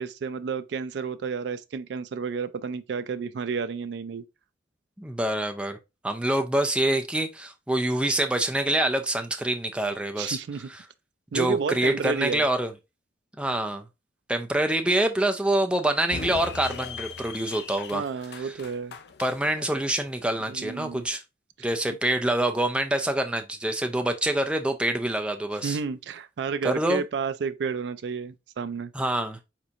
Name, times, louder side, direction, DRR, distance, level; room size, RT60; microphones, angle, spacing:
voice 1, 0.0-4.2 10.2-10.7 11.3-12.4 17.9-19.0 20.5-21.1 21.6-21.7 25.6-28.9, right 5 dB, 65° right, 0.3 m, -31 dB
voice 2, 5.0-5.8 6.0-10.4 10.7-10.8 11.3-12.7 13.4-13.9 14.3-18.0 18.4-18.5 19.2-21.2 21.6-25.8 26.6-27.0 28.9-29.4, right 1 dB, 5° right, 0.5 m, -26 dB
sound 1, 16.1-21.2, left 5 dB, 60° left, 0.5 m, -40 dB
4.5 x 4.1 x 2.5 m
head